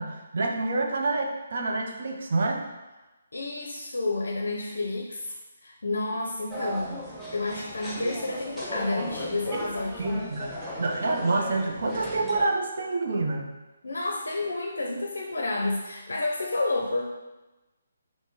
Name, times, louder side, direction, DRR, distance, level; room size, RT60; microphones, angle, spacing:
voice 1, 0.0-2.6 9.5-9.7 10.0-13.5, right 3 dB, 60° right, 2 dB, 0.5 m, -28 dB
voice 2, 3.3-5.4 5.6-7.0 7.3-10.3 13.8-17.0, left 2 dB, 75° left, 0 dB, 0.5 m, -30 dB
sound 1, 6.5-12.5, equal, 5° right, 0.6 m, -37 dB
2.9 x 2.6 x 3.6 m, 1.1 s
figure-of-eight pair, 145°, 0 cm